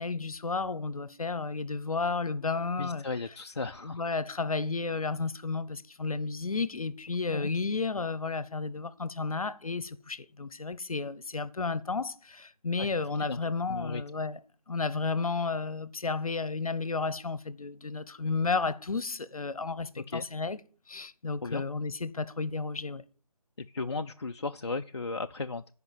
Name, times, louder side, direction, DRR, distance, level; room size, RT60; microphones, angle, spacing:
voice 1, 0.0-3.0 3.8-14.4 14.7-20.6 20.9-23.0, left 4 dB, 65° left, 0.9 m, -32 dB
voice 2, 2.8-4.0 7.3-7.5 12.8-12.9 13.2-13.4 13.7-14.0 20.0-20.3 21.4-21.6 23.6-25.7, left 3 dB, 45° left, 0.4 m, -35 dB
10.5 x 5.1 x 8.1 m
figure-of-eight pair, 170°, 20 cm